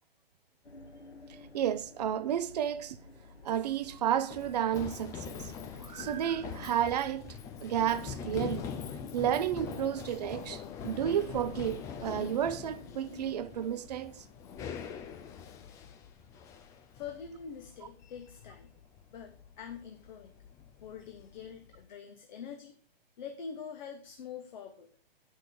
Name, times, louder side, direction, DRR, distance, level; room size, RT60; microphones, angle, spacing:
sound 1, 0.6-8.3, left 2 dB, 90° left, 1.6 m, -53 dB
voice 1, 1.5-3.0 3.4-5.5 5.8-7.4 7.6-8.7 9.1-14.2, right 10 dB, 40° right, 0.6 m, -32 dB
Run, 3.3-21.8, left 7 dB, 10° left, 0.4 m, -44 dB
sound 2, 7.7-13.8, left 5 dB, 70° left, 1.8 m, -51 dB
voice 2, 16.9-18.7 19.1-20.3 20.8-22.8 23.2-24.9, left 7 dB, 45° left, 1.4 m, -45 dB
8.9 x 6.2 x 6.9 m
figure-of-eight pair, 125°, 31 cm